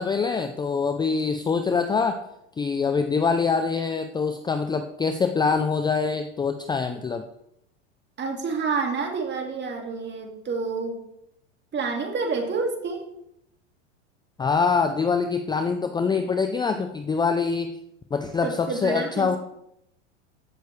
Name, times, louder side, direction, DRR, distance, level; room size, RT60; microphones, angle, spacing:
voice 1, 0.0-2.3 2.6-7.2 14.4-17.8 18.1-19.4, left 5 dB, 10° left, 8 dB, 0.5 m, -24 dB
voice 2, 8.2-11.0 11.7-13.0 18.4-19.4, right 4 dB, 30° right, 3 dB, 2.2 m, -28 dB
15.0 x 6.6 x 3.3 m, 0.79 s
hypercardioid pair, 100°, 36 cm